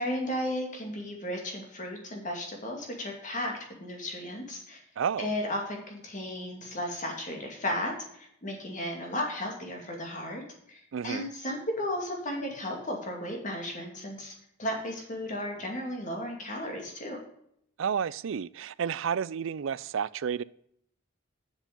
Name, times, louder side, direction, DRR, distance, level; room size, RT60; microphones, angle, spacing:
voice 1, 0.0-3.5 3.8-4.8 5.2-10.4 10.7-14.3 14.6-17.2, left 1 dB, 35° left, 2.4 m, -34 dB
voice 2, 5.0-5.3 10.9-11.3 17.8-20.4, right 7 dB, 65° right, 0.4 m, -31 dB
7.7 x 7.3 x 5.2 m
head